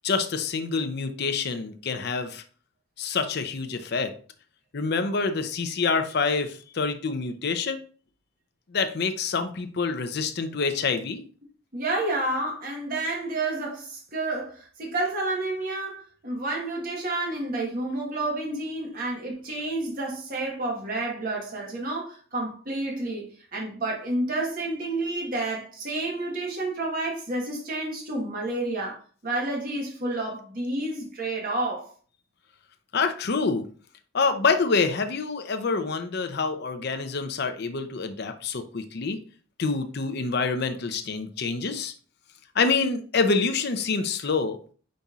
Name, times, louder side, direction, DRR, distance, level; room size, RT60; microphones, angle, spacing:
voice 1, 0.0-2.4 3.0-4.1 4.7-7.8 8.7-11.2 32.9-33.7 34.1-39.2 39.6-41.9 42.5-44.6, left 4 dB, 55° left, 0.5 m, -26 dB
voice 2, 11.7-29.0 29.2-31.9, right 2 dB, 45° right, 1.1 m, -30 dB
5.3 x 4.1 x 2.4 m
head